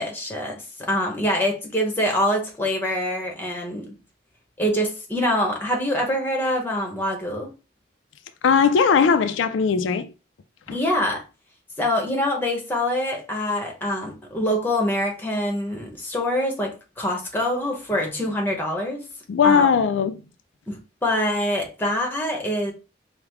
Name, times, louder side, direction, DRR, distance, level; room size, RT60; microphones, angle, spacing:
voice 1, 0.0-3.9 4.6-7.5 10.7-11.2 11.8-19.0 19.4-19.7 20.7-22.7, left 1 dB, 10° left, 0.9 m, -25 dB
voice 2, 8.4-10.1 10.7-10.8 19.3-20.2, left 6 dB, 85° left, 0.4 m, -19 dB
4.7 x 2.1 x 3.4 m
head